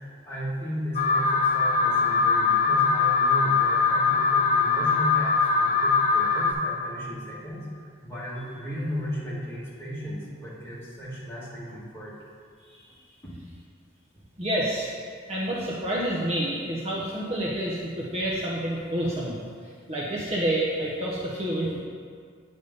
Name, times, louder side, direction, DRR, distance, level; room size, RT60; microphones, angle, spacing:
voice 1, 0.0-12.1 13.2-13.3, equal, 15° left, -9 dB, 1.6 m, -35 dB
Alarm, 1.0-6.5, left 4 dB, 40° left, 0.4 m, -22 dB
voice 2, 14.4-14.9 15.3-19.4 19.9-21.8, right 1 dB, 30° right, -5 dB, 0.7 m, -28 dB
8.2 x 3.5 x 5.3 m, 2.1 s
head